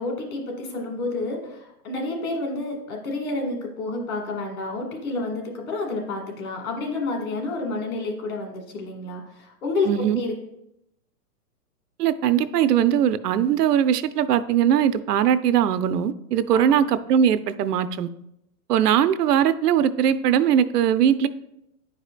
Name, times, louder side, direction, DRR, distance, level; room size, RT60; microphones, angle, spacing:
voice 1, 0.0-9.9 10.1-10.3 16.5-16.8, left 3 dB, 60° left, 2.0 m, -29 dB
voice 2, 9.9-10.2 12.0-18.1 18.7-21.3, right 9 dB, 80° right, 0.6 m, -20 dB
9.3 x 4.8 x 2.4 m
hypercardioid pair, 145°, 47 cm